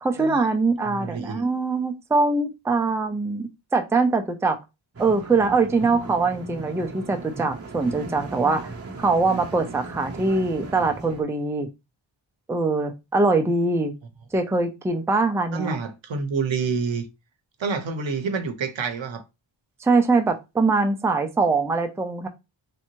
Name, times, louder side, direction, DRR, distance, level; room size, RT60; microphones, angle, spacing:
voice 1, 0.0-4.6 5.0-8.7 9.0-11.7 12.5-13.9 14.3-15.8 19.8-22.3, right 3 dB, 5° right, 0.4 m, -23 dB
voice 2, 0.8-1.4 15.5-17.1 17.6-19.2, right 5 dB, 70° right, 0.7 m, -28 dB
sound 1, 4.9-11.2, right 2 dB, 30° right, 0.8 m, -37 dB
3.3 x 2.7 x 3.0 m
wide cardioid pair, 80°, 47 cm